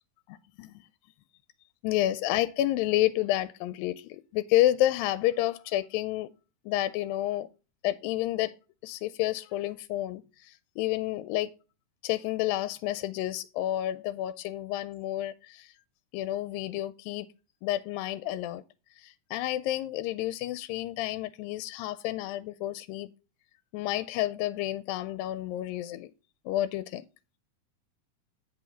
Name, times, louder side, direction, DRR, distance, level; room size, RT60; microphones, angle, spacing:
voice 1, 0.3-0.9 1.8-6.3 6.7-7.5 7.8-8.6 8.8-11.5 12.0-15.7 16.1-17.3 17.6-18.6 19.0-23.1 23.7-26.1 26.5-27.0, left 14 dB, 90° left, 2.3 m, -30 dB
8.5 x 5.3 x 4.3 m
omnidirectional pair, 4.0 m